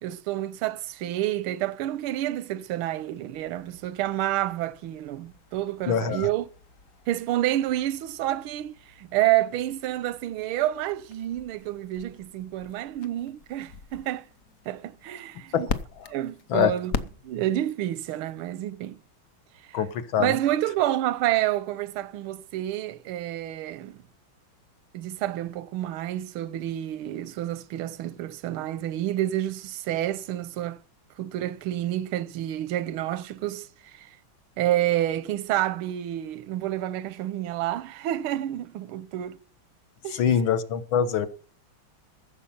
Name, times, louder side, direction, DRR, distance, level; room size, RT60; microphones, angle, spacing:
voice 1, 0.0-6.5 7.1-14.3 14.7-15.7 16.1-16.9 17.2-19.0 19.7-19.8 20.2-24.0 24.9-30.8 31.2-34.2 34.6-39.4 40.0-40.2, right 13 dB, 85° right, 1.6 m, -29 dB
sound 1, 3.3-17.7, left 5 dB, 55° left, 1.0 m, -41 dB
voice 2, 5.9-6.3 15.5-15.7 16.0-16.1 16.5-16.7 19.7-20.3 40.1-41.3, left 8 dB, 70° left, 1.8 m, -24 dB
15.0 x 7.3 x 5.7 m
omnidirectional pair, 2.3 m